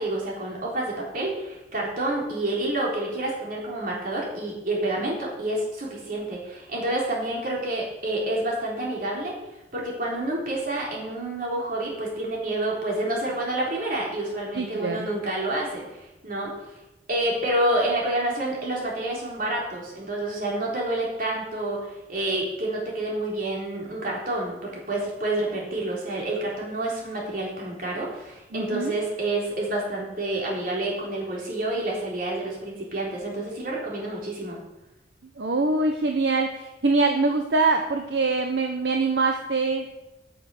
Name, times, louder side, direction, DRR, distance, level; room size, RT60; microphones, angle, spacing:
voice 1, 0.0-9.4 9.7-16.5 17.1-34.6, right 1 dB, 50° right, -3 dB, 3.9 m, -28 dB
voice 2, 14.6-15.1 28.5-29.0 35.4-39.9, right 3 dB, 75° right, 4 dB, 0.9 m, -24 dB
9.1 x 7.8 x 7.7 m, 0.99 s
head